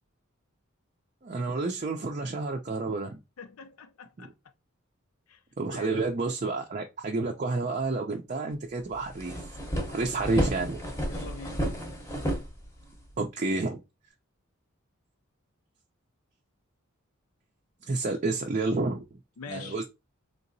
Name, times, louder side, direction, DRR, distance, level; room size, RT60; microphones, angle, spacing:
voice 1, 1.2-3.2 4.2-4.3 5.6-9.4 9.9-10.8 13.2-13.8 17.8-19.2 19.5-19.9, right 3 dB, 35° right, 0.4 m, -30 dB
voice 2, 3.4-4.3 5.3-5.4 5.7-6.0 11.1-11.7 19.4-19.9, left 5 dB, 85° left, 0.5 m, -44 dB
sound 1, 8.5-8.6 8.9-13.2, equal, 15° left, 0.8 m, -32 dB
3.8 x 2.8 x 2.6 m
head